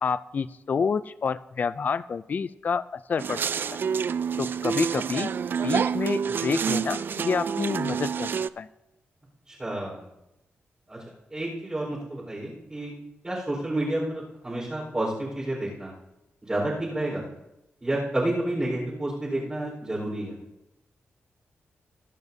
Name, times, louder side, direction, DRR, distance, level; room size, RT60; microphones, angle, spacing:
voice 1, 0.0-3.4 4.4-5.3 5.6-8.7, left 5 dB, 40° left, 15 dB, 0.4 m, -28 dB
sound 1, 3.2-8.5, right 6 dB, 50° right, 0.3 m, -28 dB
voice 2, 9.5-10.1 10.9-11.0 11.3-12.9 13.2-15.9 16.4-17.2 17.8-20.4, right 1 dB, 20° right, -6 dB, 4.5 m, -30 dB
21.5 x 10.5 x 2.8 m, 0.91 s
wide cardioid pair, 145°, 4 cm